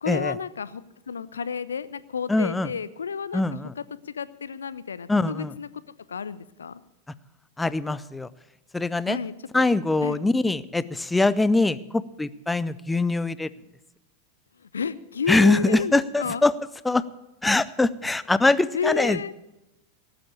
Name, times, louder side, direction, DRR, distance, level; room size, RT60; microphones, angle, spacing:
voice 1, 0.0-5.8 6.1-6.8 9.1-9.7 10.0-10.2 14.6-16.4 18.7-19.3, left 6 dB, 70° left, 16 dB, 0.6 m, -31 dB
voice 2, 2.3-2.7 3.3-3.7 5.1-5.5 7.6-8.3 8.7-9.2 9.5-13.5 15.3-16.5 16.8-17.0 17.4-19.3, left 2 dB, 10° left, 17 dB, 0.5 m, -23 dB
17.5 x 7.7 x 8.5 m, 0.93 s
figure-of-eight pair, 90°, 0 cm